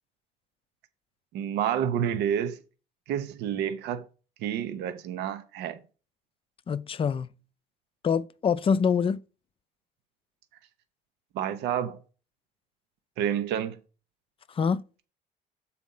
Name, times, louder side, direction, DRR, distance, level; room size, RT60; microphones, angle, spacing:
voice 1, 1.3-2.6 3.1-4.1 4.4-5.8 11.3-12.0 13.2-13.8, right 9 dB, 85° right, 0.8 m, -29 dB
voice 2, 6.7-7.3 8.0-9.2 14.6-14.8, left 6 dB, 35° left, 0.5 m, -25 dB
7.5 x 4.2 x 5.5 m
cardioid pair, 110°, 17 cm